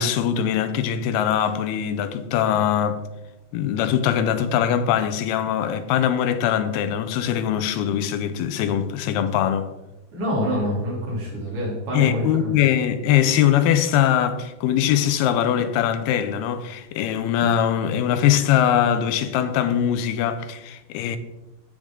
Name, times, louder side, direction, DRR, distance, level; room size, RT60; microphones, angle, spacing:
voice 1, 0.0-3.0 3.5-9.7 11.9-21.2, left 9 dB, 85° left, 2.6 m, -22 dB
voice 2, 10.1-12.5, equal, 55° right, 4.5 m, -26 dB
15.5 x 5.3 x 3.7 m
omnidirectional pair, 4.4 m